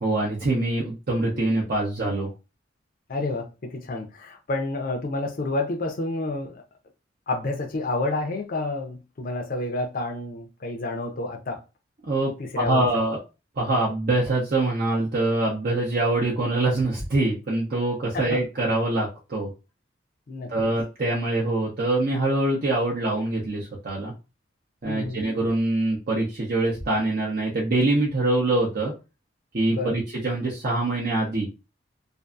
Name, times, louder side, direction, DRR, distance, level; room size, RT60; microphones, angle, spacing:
voice 1, 0.0-2.3 12.1-13.2 13.6-19.5 20.5-24.1 24.8-28.9 29.5-31.5, right 2 dB, 50° right, 0.7 m, -24 dB
voice 2, 3.1-6.6 7.3-11.6 12.4-12.8 18.1-18.4 20.3-20.5 24.9-25.2 29.7-30.0, left 2 dB, 50° left, 0.5 m, -29 dB
2.6 x 2.5 x 2.3 m
head